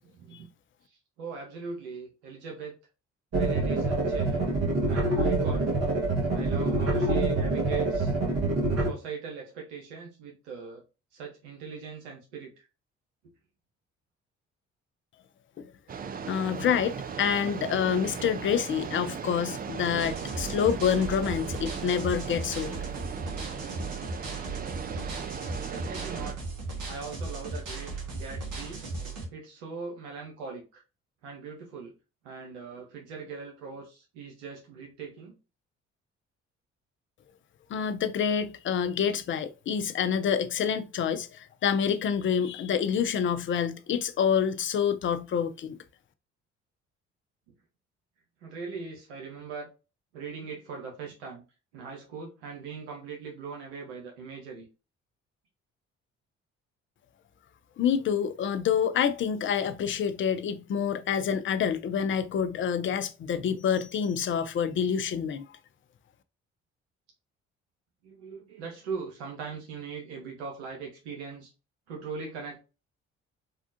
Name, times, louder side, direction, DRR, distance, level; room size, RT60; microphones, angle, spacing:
voice 1, 0.0-0.5 1.2-2.8 3.3-4.4 4.9-5.7 6.3-8.1 8.8-10.8 11.1-12.7 25.7-26.4 26.7-28.8 29.3-30.8 31.2-31.9 32.2-35.4 48.4-49.7 50.1-51.4 51.7-54.7 68.0-71.5 71.9-72.6, right 5 dB, 85° right, 0.8 m, -40 dB
sound 1, 3.3-8.9, right 2 dB, 50° right, 1.4 m, -26 dB
sound 2, 15.9-26.3, right 6 dB, 30° right, 0.4 m, -37 dB
voice 2, 16.3-22.7 37.7-45.8 57.8-65.4, left 7 dB, 40° left, 0.5 m, -27 dB
sound 3, 20.0-29.3, right 3 dB, 65° right, 1.4 m, -37 dB
3.5 x 2.4 x 2.5 m
hypercardioid pair, 50°, 33 cm